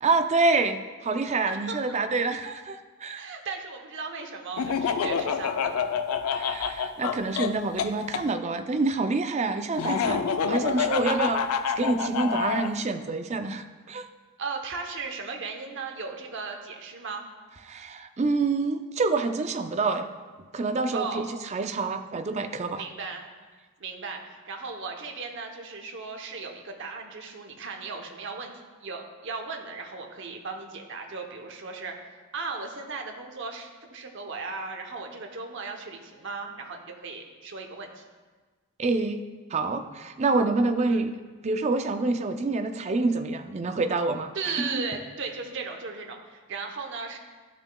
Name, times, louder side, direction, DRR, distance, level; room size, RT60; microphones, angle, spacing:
voice 1, 0.0-3.2 6.3-11.4 11.8-14.1 17.7-20.1 20.5-22.8 38.8-39.2 39.5-41.1 41.4-44.9, right 3 dB, 30° right, 8 dB, 0.4 m, -27 dB
voice 2, 1.5-2.0 3.1-5.8 14.4-17.3 20.9-21.3 22.8-23.3 23.8-28.5 28.8-38.0 40.9-41.1 44.3-47.2, right 4 dB, 55° right, 2 dB, 0.8 m, -36 dB
Laughter, 4.6-8.2 9.8-12.7, left 6 dB, 75° left, 0.4 m, -27 dB
12.5 x 5.8 x 2.3 m, 1.4 s
head